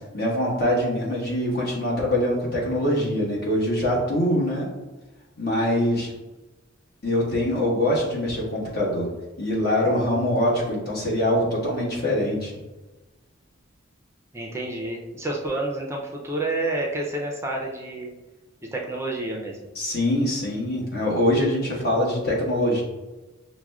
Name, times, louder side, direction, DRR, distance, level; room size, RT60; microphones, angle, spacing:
voice 1, 0.1-4.7 5.4-6.1 7.0-9.1 9.4-12.6 19.7-22.8, left 1 dB, 50° left, -4 dB, 1.2 m, -23 dB
voice 2, 14.3-18.1 18.7-19.6, right 2 dB, 15° right, -1 dB, 0.4 m, -29 dB
5.9 x 2.1 x 2.3 m, 1.1 s
head